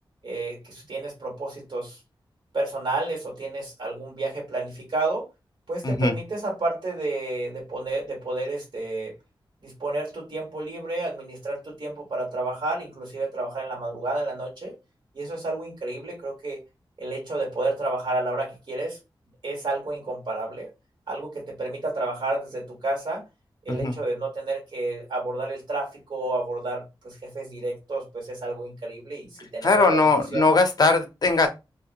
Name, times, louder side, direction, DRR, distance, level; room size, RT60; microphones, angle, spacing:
voice 1, 0.2-2.0 2.5-5.3 5.7-9.1 9.6-14.7 15.1-16.6 17.0-19.0 19.4-20.7 21.1-23.2 23.6-30.5, right 2 dB, 60° right, 1.3 m, -30 dB
voice 2, 29.6-31.5, left 3 dB, 50° left, 0.6 m, -20 dB
2.8 x 2.2 x 2.5 m
wide cardioid pair, 100°, 9 cm